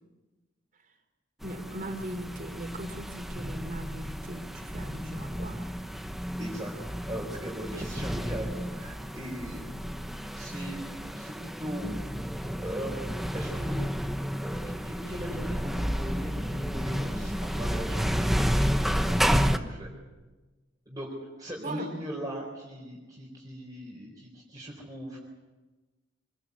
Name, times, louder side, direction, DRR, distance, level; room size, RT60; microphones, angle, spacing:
sound 1, 1.4-19.6, equal, ahead, 1.0 m, -31 dB
voice 1, 1.4-5.6 21.6-21.9, right 1 dB, 45° right, 5 dB, 3.4 m, -39 dB
voice 2, 6.4-9.6 10.3-10.8 11.1-11.9 12.4-13.8 14.4-19.9 20.9-21.1 21.4-25.2, equal, 20° right, -3 dB, 4.2 m, -39 dB
25.5 x 20.0 x 8.3 m, 1.2 s
head